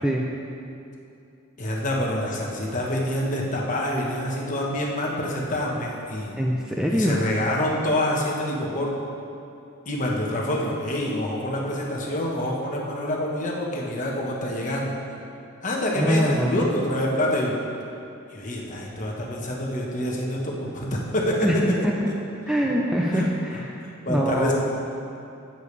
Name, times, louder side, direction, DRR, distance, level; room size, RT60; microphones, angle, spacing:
voice 1, 1.6-6.3 6.9-8.9 9.8-15.0 15.6-17.5 18.3-21.6 23.1-23.3 24.0-24.5, left 1 dB, 35° left, -2 dB, 1.3 m, -26 dB
voice 2, 6.4-7.3 16.0-16.7 21.4-21.6 21.8-22.1 22.5-23.6 24.1-24.5, equal, 5° right, -2 dB, 0.5 m, -23 dB
15.5 x 6.9 x 3.3 m, 2.7 s
head